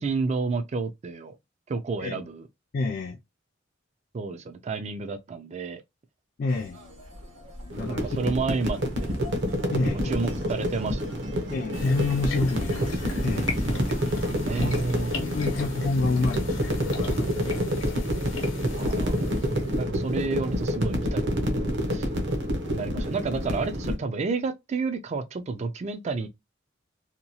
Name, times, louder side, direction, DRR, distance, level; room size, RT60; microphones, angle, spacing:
voice 1, 0.0-1.4 1.7-2.5 4.1-5.8 7.9-9.1 10.0-11.0 14.5-15.1 18.7-19.4 19.8-22.1 22.7-26.3, right 4 dB, 35° right, 0.3 m, -30 dB
voice 2, 2.7-3.2 6.4-6.8 7.8-8.4 9.7-10.2 11.5-13.5 14.6-14.7 15.1-17.3 18.8-18.9, left 3 dB, 45° left, 0.3 m, -28 dB
sound 1, 6.5-17.6, equal, 85° right, 1.4 m, -44 dB
sound 2, 7.7-24.0, equal, 65° right, 0.8 m, -28 dB
sound 3, 11.7-19.8, left 3 dB, 65° left, 0.8 m, -38 dB
2.8 x 2.3 x 2.7 m
head